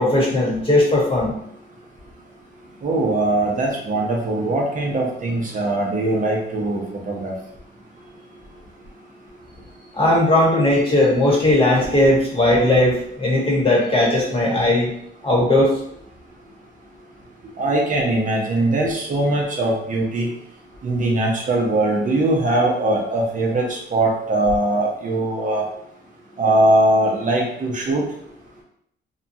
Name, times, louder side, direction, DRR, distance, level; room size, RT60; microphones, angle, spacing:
voice 1, 0.0-1.3 9.9-14.9 15.2-15.7, left 1 dB, 25° left, -3 dB, 1.1 m, -17 dB
voice 2, 2.8-7.3 17.6-20.3 20.8-25.6 26.4-28.1, right 2 dB, 40° right, -1 dB, 0.7 m, -21 dB
2.9 x 2.2 x 2.6 m, 0.71 s
cardioid pair, 90°, 20 cm